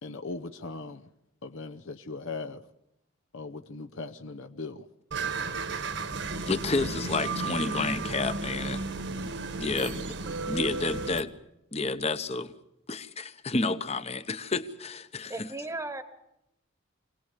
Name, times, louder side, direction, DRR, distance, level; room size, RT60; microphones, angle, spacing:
voice 1, 0.0-1.1 1.4-2.7 3.3-4.9 9.8-9.9, left 3 dB, 65° left, 0.8 m, -39 dB
sound 1, 5.1-11.2, right 3 dB, 55° right, 1.3 m, -33 dB
voice 2, 6.5-9.3 9.5-10.0 10.5-11.3 11.7-12.5 12.9-15.5, left 3 dB, 30° left, 1.0 m, -30 dB
voice 3, 15.3-16.0, right 2 dB, 15° right, 1.2 m, -35 dB
25.0 x 18.0 x 8.4 m
head